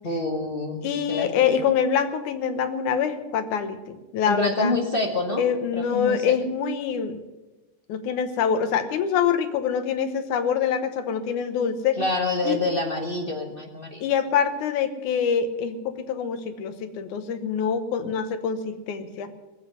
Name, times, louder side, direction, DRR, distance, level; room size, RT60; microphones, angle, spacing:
voice 1, 0.0-1.6 4.3-5.5 5.7-6.3 12.0-14.0 18.0-18.1, left 2 dB, 35° left, 2 dB, 0.9 m, -27 dB
voice 2, 0.8-4.7 5.4-7.2 7.9-12.0 12.4-12.6 14.0-19.3, left 7 dB, 85° left, 10 dB, 2.5 m, -25 dB
18.5 x 7.9 x 9.6 m, 1.1 s
omnidirectional pair, 3.5 m